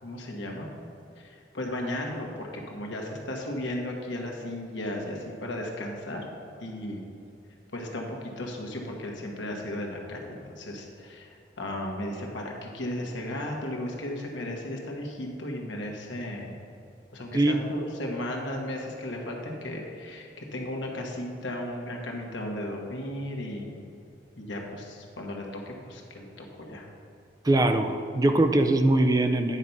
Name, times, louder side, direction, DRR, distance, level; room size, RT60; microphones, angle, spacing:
voice 1, 0.0-0.7 1.2-6.2 6.6-7.1 7.7-11.3 11.6-16.5 17.1-23.8 24.4-26.9, left 1 dB, 90° left, 0 dB, 1.4 m, -35 dB
voice 2, 17.3-17.7 27.4-29.6, right 2 dB, 20° right, 6 dB, 0.4 m, -22 dB
9.8 x 4.6 x 5.5 m, 2.7 s
head